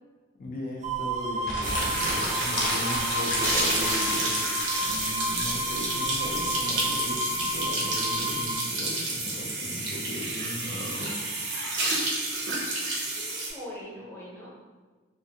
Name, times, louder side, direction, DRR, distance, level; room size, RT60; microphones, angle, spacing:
voice 1, 0.4-4.3 4.8-11.1, left 1 dB, 45° left, -2 dB, 0.4 m, -37 dB
sound 1, 0.8-8.5, equal, 40° right, 0.4 m, -32 dB
sound 2, 1.4-5.1, left 1 dB, 80° left, 0.7 m, -31 dB
sound 3, 1.6-13.5, right 2 dB, 80° right, 0.6 m, -30 dB
voice 2, 13.1-14.5, equal, 15° left, -8 dB, 0.8 m, -42 dB
2.5 x 2.4 x 2.7 m, 1.4 s
head